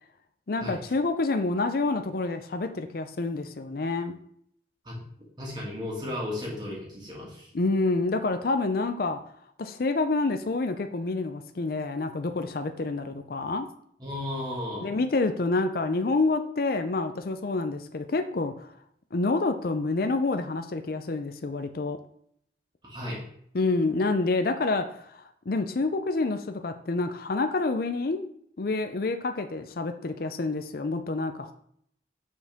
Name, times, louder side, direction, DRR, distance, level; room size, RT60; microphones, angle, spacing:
voice 1, 0.5-4.2 7.5-9.2 9.6-13.7 14.8-18.5 19.1-22.0 23.5-28.3 28.6-31.5, left 3 dB, 50° left, 8 dB, 0.5 m, -28 dB
voice 2, 5.4-7.5 14.0-15.0 22.8-23.2, left 1 dB, 25° right, -4 dB, 2.1 m, -34 dB
8.5 x 4.6 x 3.5 m, 0.68 s
head